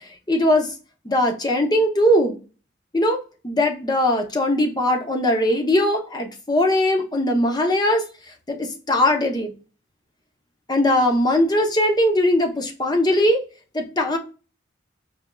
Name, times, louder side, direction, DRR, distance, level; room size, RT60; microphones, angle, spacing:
voice 1, 0.3-0.7 1.0-2.4 2.9-3.2 3.4-8.0 8.5-9.5 10.7-13.4 13.7-14.2, left 1 dB, 20° left, 0.7 m, -20 dB
4.9 x 3.4 x 2.2 m
head